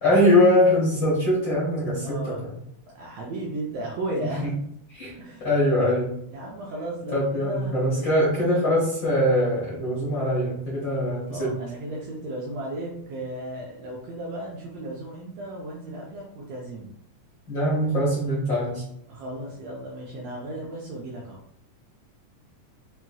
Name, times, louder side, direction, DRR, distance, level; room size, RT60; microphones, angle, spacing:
voice 1, 0.0-2.5 4.2-4.5 4.9-6.1 7.1-11.5 17.5-18.8, left 1 dB, 55° left, -7 dB, 1.4 m, -22 dB
voice 2, 2.0-2.4 2.9-4.4 5.2-5.5 6.3-8.1 11.3-16.9 19.1-21.4, right 1 dB, 70° right, -3 dB, 1.7 m, -35 dB
5.6 x 2.9 x 2.3 m, 0.73 s
omnidirectional pair, 3.6 m